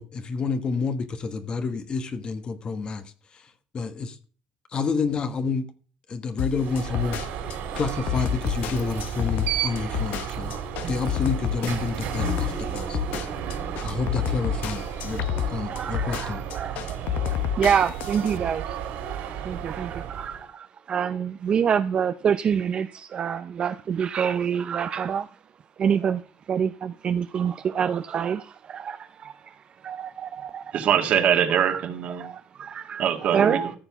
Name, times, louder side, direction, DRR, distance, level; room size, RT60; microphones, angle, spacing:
voice 1, 0.0-3.0 3.3-3.4 3.7-4.2 4.7-5.7 6.1-7.2 7.7-10.5 10.9-13.0 13.8-16.4, left 4 dB, 35° left, 1.3 m, -29 dB
sound 1, 6.4-18.4, left 14 dB, 75° left, 0.9 m, -30 dB
Alarm, 6.5-20.5, right 8 dB, 85° right, 4.2 m, -33 dB
voice 2, 15.7-17.1 17.5-19.0 19.4-25.4 25.8-26.2 26.5-29.4 29.8-30.8 31.6-31.8 32.2-33.8, right 7 dB, 40° right, 0.6 m, -27 dB
voice 3, 30.7-32.3 33.0-33.6, right 9 dB, 60° right, 1.9 m, -22 dB
14.5 x 6.8 x 5.9 m
cardioid pair, 125°, 3 cm